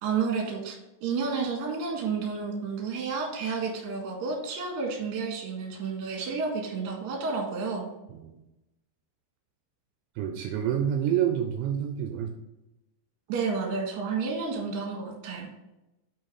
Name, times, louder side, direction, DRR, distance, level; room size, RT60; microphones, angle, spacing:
voice 1, 0.0-7.9 13.3-15.5, right 5 dB, 60° right, 0 dB, 2.2 m, -31 dB
voice 2, 10.2-12.3, right 9 dB, 80° right, 4 dB, 2.8 m, -28 dB
7.8 x 4.8 x 4.2 m, 0.94 s
omnidirectional pair, 5.6 m